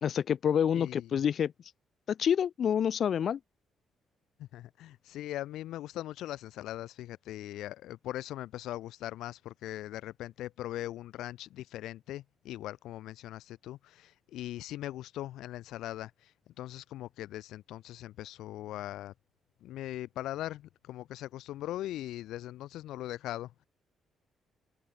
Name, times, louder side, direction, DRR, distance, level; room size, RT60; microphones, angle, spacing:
voice 1, 0.0-1.5 2.1-3.4, left 8 dB, 60° left, 1.4 m, -27 dB
voice 2, 0.7-1.1 4.4-19.1 19.6-23.5, left 14 dB, 85° left, 7.1 m, -40 dB
cardioid pair, 90°, 0 cm